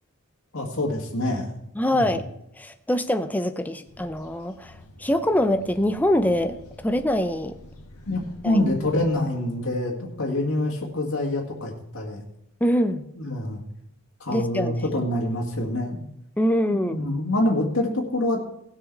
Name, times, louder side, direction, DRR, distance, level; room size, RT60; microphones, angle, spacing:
voice 1, 0.5-1.5 1.9-2.1 8.1-12.2 13.2-13.6 14.2-16.0 16.7-18.4, left 1 dB, 65° left, -2 dB, 1.9 m, -26 dB
voice 2, 1.8-2.3 2.6-4.7 5.0-6.6 6.8-7.6 8.4-8.6 12.6-13.1 14.3-14.8 16.4-17.0, left 1 dB, 5° left, 9 dB, 0.6 m, -24 dB
sound 1, 3.8-9.1, equal, 85° left, 1.9 m, -47 dB
18.0 x 6.4 x 4.6 m, 0.79 s
head